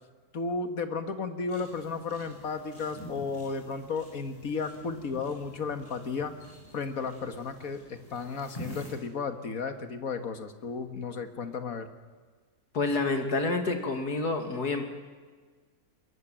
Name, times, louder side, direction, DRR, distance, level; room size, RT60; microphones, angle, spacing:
voice 1, 0.3-6.3 6.7-11.9, left 4 dB, 65° left, 8 dB, 2.1 m, -34 dB
sound 1, 1.5-8.9, equal, 20° left, 7.8 m, -47 dB
voice 2, 12.7-14.8, left 3 dB, 85° left, 5 dB, 3.1 m, -28 dB
23.0 x 21.5 x 9.2 m, 1.5 s
omnidirectional pair, 1.6 m